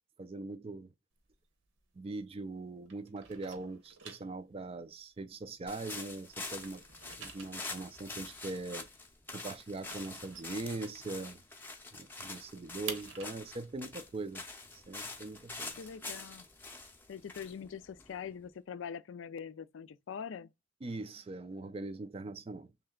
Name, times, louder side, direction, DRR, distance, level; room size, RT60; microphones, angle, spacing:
voice 1, 0.2-0.9 1.9-6.8 7.2-8.9 9.3-11.4 11.9-14.4 14.7-15.8 20.8-22.7, right 3 dB, 30° right, 0.4 m, -41 dB
sound 1, 1.1-2.6 2.8-6.1 6.4-11.4 11.7-11.8 12.1-15.8, right 6 dB, 75° right, 0.9 m, -49 dB
sound 2, 5.7-18.5, left 3 dB, 10° left, 0.6 m, -46 dB
voice 2, 15.8-16.5 17.1-20.5, left 7 dB, 70° left, 0.4 m, -43 dB
3.3 x 2.7 x 3.6 m
head